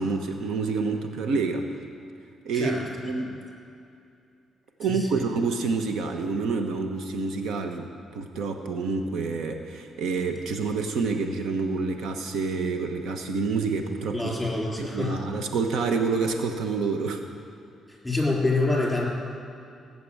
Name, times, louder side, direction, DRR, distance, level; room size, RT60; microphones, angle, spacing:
voice 1, 0.0-1.7 2.4-2.8 3.0-3.3 4.8-14.3 14.8-17.2, right 4 dB, 75° right, 5 dB, 1.1 m, -28 dB
voice 2, 2.5-2.9 3.2-3.3 4.9-5.2 14.1-15.3 17.9-19.1, left 2 dB, 5° left, -3 dB, 3.6 m, -27 dB
18.0 x 6.9 x 8.6 m, 2.6 s
cardioid pair, 120°, 0 cm